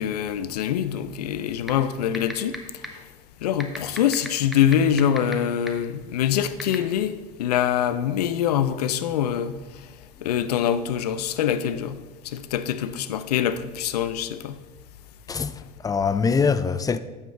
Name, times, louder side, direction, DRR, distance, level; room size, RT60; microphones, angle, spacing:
voice 1, 0.0-2.5 3.4-9.6 10.2-12.0 12.3-14.6, left 9 dB, 80° left, 0.5 m, -24 dB
sound 1, 1.7-1.8 2.1-2.6 2.8-2.9 3.6-5.3 5.7-5.8 6.6-6.8, equal, ahead, 1.1 m, -31 dB
voice 2, 15.3-17.0, left 5 dB, 20° left, 0.4 m, -23 dB
9.1 x 7.3 x 3.5 m
hypercardioid pair, 75°, 20 cm